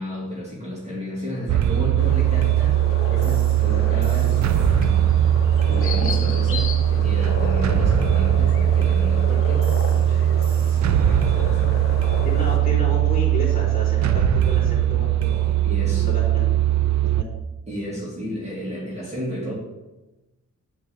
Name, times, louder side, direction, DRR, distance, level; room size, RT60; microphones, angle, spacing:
voice 1, 0.0-5.0 5.6-12.0 15.6-16.1 17.7-19.5, equal, 20° right, -5 dB, 2.1 m, -33 dB
sound 1, 1.5-17.2, right 11 dB, 60° right, 0.5 m, -20 dB
sound 2, 2.0-12.6, left 4 dB, 40° left, 1.1 m, -34 dB
voice 2, 12.2-15.5 16.0-16.5 17.0-17.2, equal, 25° left, -7 dB, 3.4 m, -31 dB
9.4 x 3.6 x 7.0 m, 1.0 s
wide cardioid pair, 160°, 33 cm